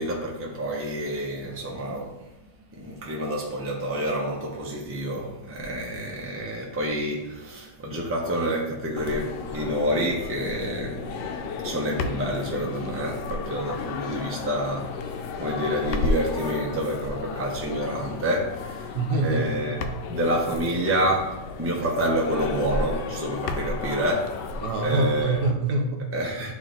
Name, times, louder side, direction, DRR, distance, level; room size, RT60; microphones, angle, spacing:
voice 1, 0.0-2.2 2.7-15.1 15.4-18.9 19.2-19.8 20.1-24.5 24.8-25.4 26.1-26.5, equal, 10° right, -2 dB, 0.7 m, -28 dB
sound 1, 9.0-25.5, left 4 dB, 85° left, 1.2 m, -33 dB
voice 2, 18.9-20.2 20.6-20.7 24.6-26.2, right 3 dB, 75° right, 4 dB, 1.3 m, -26 dB
8.6 x 3.2 x 3.9 m, 0.98 s
omnidirectional pair, 1.8 m